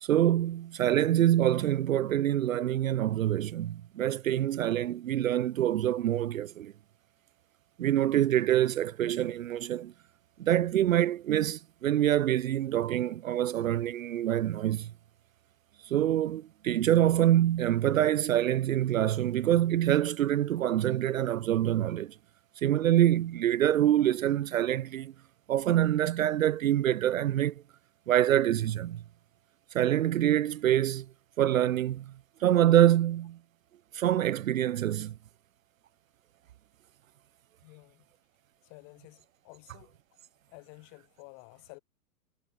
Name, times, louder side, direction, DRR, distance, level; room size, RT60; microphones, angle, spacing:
voice 1, 0.0-6.7 7.8-9.9 10.4-14.9 15.8-22.2 22.6-25.1 25.5-27.6 28.1-29.0 29.7-31.1 31.4-32.1 32.4-33.4 33.9-35.2, right 12 dB, 65° right, 0.5 m, -25 dB
voice 2, 37.6-38.1 38.6-40.0 40.5-41.8, left 40 dB or more, 35° left, 1.7 m, -52 dB
figure-of-eight pair, 105°, 45 cm